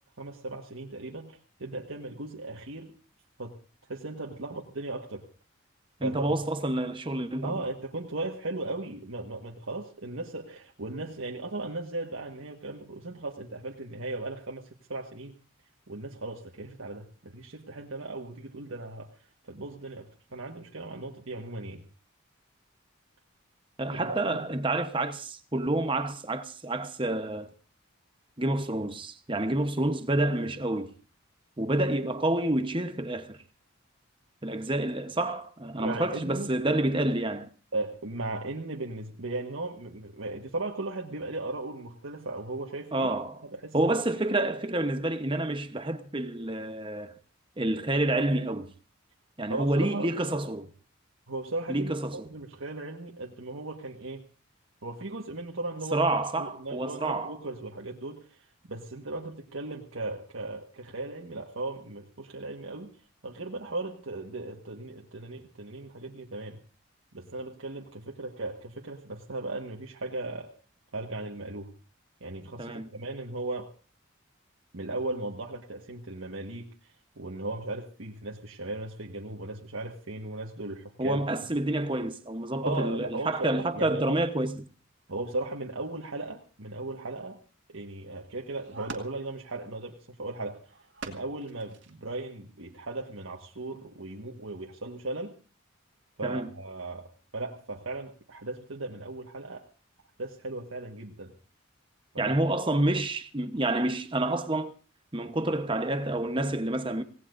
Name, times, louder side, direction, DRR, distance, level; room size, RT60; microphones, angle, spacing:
voice 1, 0.2-2.9 3.4-3.6 3.9-5.2 6.0-6.3 7.4-15.3 15.9-19.1 19.4-21.8 23.9-24.5 35.8-36.5 37.7-43.1 43.4-43.9 49.5-50.1 51.3-54.2 54.8-56.1 56.4-62.9 63.2-66.6 67.1-70.5 70.9-71.7 72.2-73.7 74.7-81.2 82.6-84.2 85.1-87.4 87.7-90.6 91.0-95.3 96.2-99.6 100.2-101.3 102.1-102.3, right 2 dB, 75° right, 1.5 m, -37 dB
voice 2, 6.0-7.5 23.8-27.5 28.4-30.9 31.6-33.4 34.4-37.5 42.9-43.4 43.7-47.1 47.6-48.7 49.4-50.7 51.7-52.2 55.9-57.4 72.6-72.9 81.0-84.7 96.2-96.5 102.2-104.7 105.1-107.0, right 1 dB, 25° right, 1.0 m, -28 dB
sound 1, 88.5-89.4 90.7-91.9 92.7-92.8 93.2-93.3, right 4 dB, 55° right, 2.0 m, -44 dB
26.0 x 17.5 x 2.6 m
head